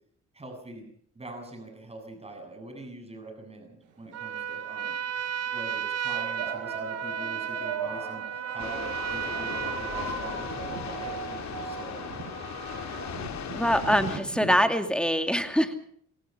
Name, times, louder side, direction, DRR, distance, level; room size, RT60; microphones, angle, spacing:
voice 1, 0.3-0.9 1.1-5.0 5.5-12.0 12.7-13.0 14.1-14.2, right 2 dB, 20° right, 4 dB, 8.0 m, -43 dB
Trumpet, 4.1-10.6, right 8 dB, 55° right, 2.1 m, -34 dB
sound 1, 4.1-4.2 5.1-5.3 6.1-15.0, right 5 dB, 90° right, 5.9 m, -38 dB
sound 2, 8.6-14.2, left 7 dB, 65° left, 4.7 m, -37 dB
voice 2, 13.5-15.7, equal, 5° left, 8 dB, 2.5 m, -24 dB
26.5 x 18.0 x 5.7 m, 0.62 s
cardioid pair, 90°, 30 cm